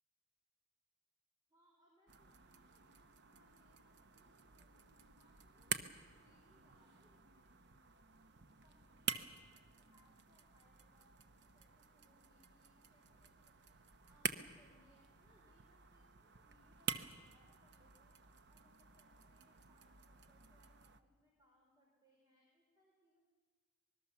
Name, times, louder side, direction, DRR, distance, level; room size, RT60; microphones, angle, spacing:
voice 1, 1.5-4.8 5.2-5.8 6.2-9.2 9.5-13.8 14.1-18.2 18.5-23.2, left 1 dB, 20° right, -1 dB, 4.3 m, -74 dB
sound 1, 2.1-21.0, right 6 dB, 50° right, 1.0 m, -49 dB
25.0 x 21.0 x 7.1 m, 1.3 s
head